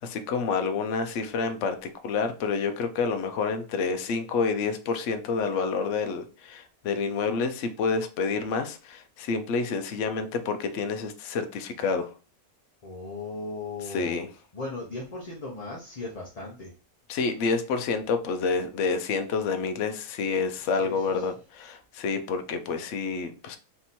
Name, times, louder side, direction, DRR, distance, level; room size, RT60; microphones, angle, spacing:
voice 1, 0.0-12.1 13.9-14.3 17.1-23.6, left 4 dB, 65° left, 0.9 m, -28 dB
voice 2, 12.8-14.2 14.5-16.7 20.7-21.3, left 3 dB, 30° left, 0.8 m, -37 dB
3.5 x 2.9 x 4.1 m
omnidirectional pair, 1.5 m